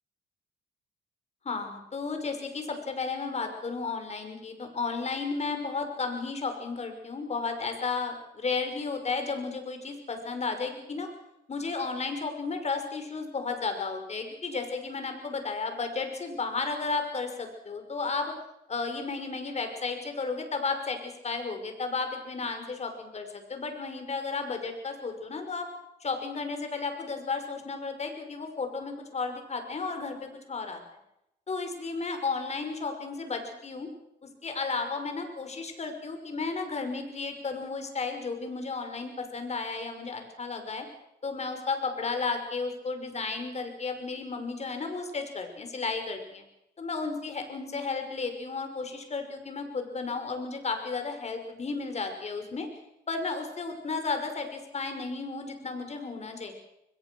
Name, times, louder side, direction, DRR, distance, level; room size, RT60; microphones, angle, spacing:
voice 1, 1.4-11.1 11.5-18.3 18.7-25.7 26.0-30.8 31.5-33.9 34.4-40.9 41.2-46.4 46.8-52.7 53.1-56.5, left 4 dB, 40° left, 6 dB, 5.9 m, -33 dB
24.0 x 21.0 x 6.4 m, 0.84 s
cardioid pair, 90°, 17 cm